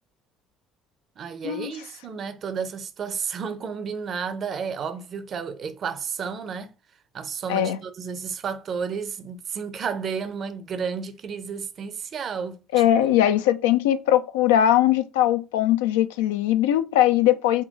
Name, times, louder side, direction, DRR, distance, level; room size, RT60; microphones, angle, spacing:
voice 1, 1.2-6.7 7.1-12.6 13.1-13.2, right 6 dB, 50° right, 0.6 m, -32 dB
voice 2, 12.7-17.6, left 12 dB, 80° left, 0.3 m, -20 dB
3.7 x 2.2 x 4.0 m
hypercardioid pair, 60°, 0 cm